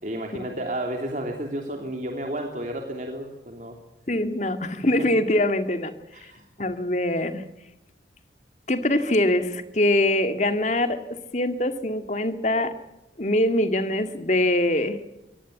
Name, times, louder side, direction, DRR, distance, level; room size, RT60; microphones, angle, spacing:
voice 1, 0.0-3.8 6.1-6.4, right 1 dB, 45° right, 2 dB, 3.1 m, -32 dB
voice 2, 4.1-5.9 6.2-6.3 6.6-7.4 8.7-12.7 13.2-15.0, left 1 dB, 40° left, 9 dB, 2.0 m, -23 dB
23.5 x 18.5 x 8.4 m, 0.93 s
head